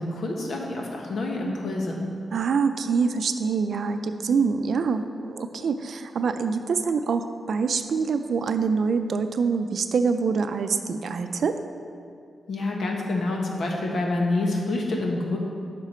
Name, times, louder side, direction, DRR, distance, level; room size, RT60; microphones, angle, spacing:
voice 1, 0.0-2.0 12.5-15.4, left 2 dB, 70° left, 0 dB, 1.3 m, -27 dB
voice 2, 2.3-11.6, right 5 dB, 70° right, 8 dB, 0.5 m, -25 dB
9.9 x 6.0 x 4.4 m, 2.3 s
wide cardioid pair, 105°, 0 cm